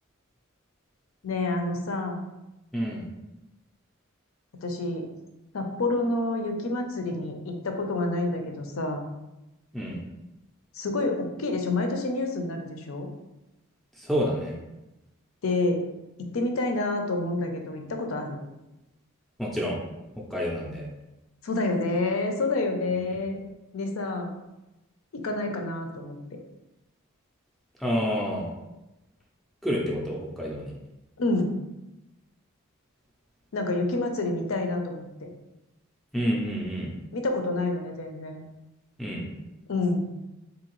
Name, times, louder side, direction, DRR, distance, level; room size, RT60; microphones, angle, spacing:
voice 1, 1.2-2.2 4.6-5.1 5.5-9.1 10.7-13.1 15.4-15.8 16.3-18.4 21.4-23.4 23.7-24.3 25.1-26.2 31.2-31.5 33.5-35.3 37.1-38.4 39.7-40.1, left 2 dB, 75° left, 4 dB, 0.5 m, -28 dB
voice 2, 2.7-3.0 9.7-10.0 14.0-14.6 19.4-19.8 20.3-20.9 22.9-23.0 27.8-28.5 29.6-30.8 36.1-36.9 39.0-39.3, equal, ahead, -4 dB, 0.4 m, -28 dB
3.7 x 2.7 x 3.0 m, 0.97 s
head